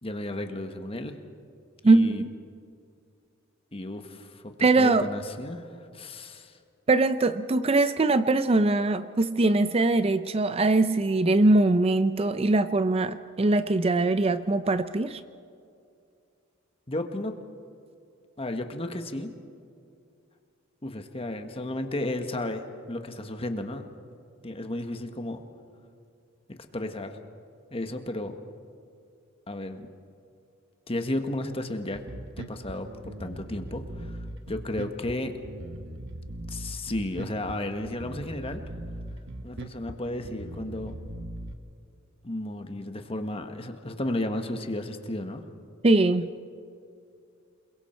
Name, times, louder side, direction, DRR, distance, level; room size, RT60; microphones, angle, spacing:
voice 1, 0.0-1.2 1.8-2.2 3.7-5.7 5.9-6.6 16.9-17.4 18.4-19.4 20.8-23.9 24.4-25.4 26.7-27.2 27.7-28.4 29.5-29.9 30.9-32.0 32.4-34.2 34.5-35.3 36.5-38.6 39.4-41.0 42.2-45.4, left 1 dB, 30° left, 6 dB, 1.4 m, -33 dB
voice 2, 1.8-2.3 4.6-5.0 6.9-15.2 45.8-46.3, right 2 dB, 30° right, 12 dB, 0.5 m, -22 dB
Bass guitar, 31.9-41.5, right 1 dB, 60° right, 1.3 m, -39 dB
28.5 x 22.0 x 4.5 m, 2.5 s
head